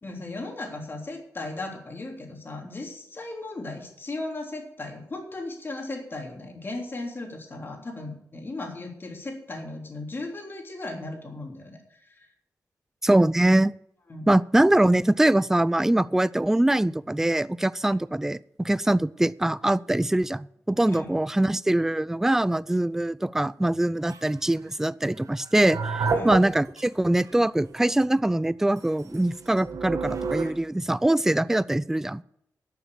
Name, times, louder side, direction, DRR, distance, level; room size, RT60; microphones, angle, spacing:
voice 1, 0.0-12.3 14.1-14.4 20.8-21.1 26.1-26.4, left 2 dB, 40° left, 1 dB, 3.3 m, -36 dB
voice 2, 13.0-13.7 14.3-32.2, right 1 dB, 5° right, 19 dB, 0.4 m, -23 dB
sound 1, 24.1-24.4 25.4-26.8 27.2-27.3 27.8-28.0 28.8-30.5, right 4 dB, 75° right, 1.7 m, -30 dB
11.5 x 7.0 x 8.5 m, 0.75 s
cardioid pair, 85°, 6 cm